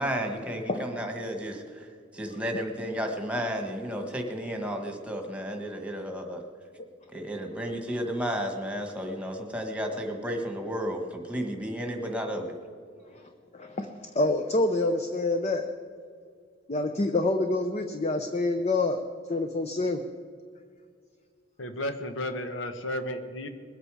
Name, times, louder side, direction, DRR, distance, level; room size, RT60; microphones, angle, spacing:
voice 1, 0.0-1.9 2.1-6.4 7.1-12.5, equal, 5° right, 3 dB, 1.5 m, -32 dB
voice 2, 13.5-15.6 16.7-19.0 19.3-20.0, left 2 dB, 35° left, 7 dB, 0.6 m, -27 dB
voice 3, 21.6-23.5, left 1 dB, 85° left, 8 dB, 1.1 m, -33 dB
21.5 x 8.3 x 4.9 m, 2.1 s
head